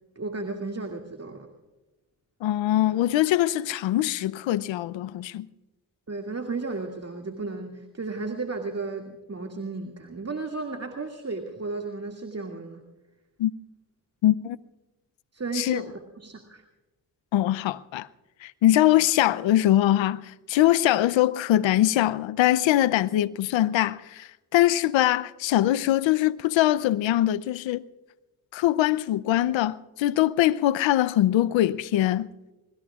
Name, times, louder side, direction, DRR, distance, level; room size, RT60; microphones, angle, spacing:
voice 1, 0.2-1.5 6.1-12.8 15.3-16.6, right 3 dB, 35° right, 2.2 m, -34 dB
voice 2, 2.4-5.5 13.4-13.5 14.2-14.6 15.5-15.8 17.3-18.1 18.4-27.8 28.5-32.3, left 13 dB, 80° left, 0.7 m, -22 dB
26.0 x 20.5 x 2.4 m
supercardioid pair, 50°, 44 cm